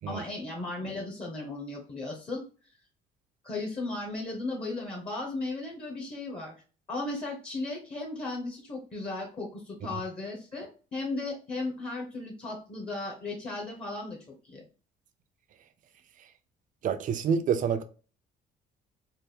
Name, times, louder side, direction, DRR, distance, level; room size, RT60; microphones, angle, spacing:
voice 1, 0.1-2.4 3.4-6.5 6.9-14.2 14.4-14.6, left 2 dB, 35° left, 1.1 m, -36 dB
voice 2, 16.8-17.8, right 7 dB, 50° right, 0.5 m, -27 dB
3.4 x 2.1 x 4.2 m
cardioid pair, 110°, 17 cm